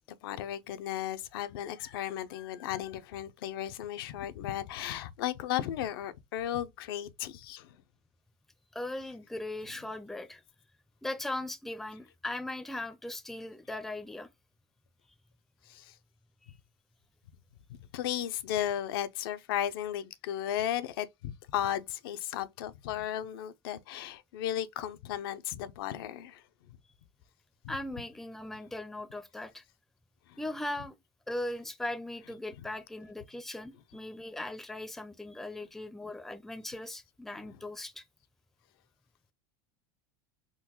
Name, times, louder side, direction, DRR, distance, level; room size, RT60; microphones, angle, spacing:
voice 1, 0.2-7.8 15.7-15.9 17.9-26.4 30.3-30.4 37.4-37.5, left 11 dB, 80° left, 0.5 m, -35 dB
voice 2, 8.7-10.4 11.0-14.3 27.7-29.6 30.4-31.0 31.3-38.0, left 1 dB, 5° left, 0.4 m, -39 dB
3.8 x 2.2 x 2.8 m
supercardioid pair, 130°, 12 cm